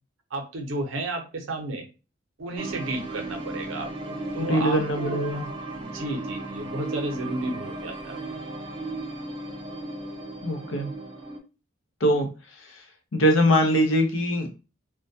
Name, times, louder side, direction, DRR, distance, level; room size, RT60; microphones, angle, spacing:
voice 1, 0.3-1.8 2.4-5.2 5.8-8.4, right 2 dB, 90° right, 4 dB, 0.6 m, -33 dB
sound 1, 2.6-11.4, right 2 dB, 25° right, 0.4 m, -35 dB
voice 2, 4.4-5.5 10.4-10.9 12.0-12.3 12.6-12.8 13.1-14.5, equal, 80° left, 4 dB, 0.7 m, -22 dB
2.2 x 2.2 x 2.7 m, 0.31 s
head